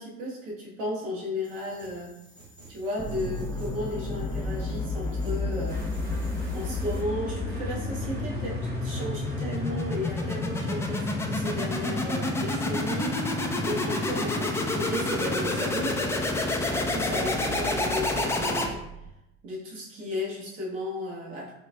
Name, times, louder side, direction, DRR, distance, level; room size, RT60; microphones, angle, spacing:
voice 1, 0.0-2.2 2.7-5.8 6.5-16.0 16.6-18.8 19.4-21.5, left 1 dB, 70° right, -4 dB, 1.3 m, -34 dB
sound 1, 1.4-7.0, right 2 dB, 90° right, 0.9 m, -51 dB
sound 2, 3.0-19.1, left 2 dB, 5° left, 0.3 m, -29 dB
sound 3, 5.7-15.8, right 2 dB, 25° right, 1.0 m, -48 dB
6.4 x 2.4 x 2.2 m, 0.88 s
figure-of-eight pair, 60°, 40 cm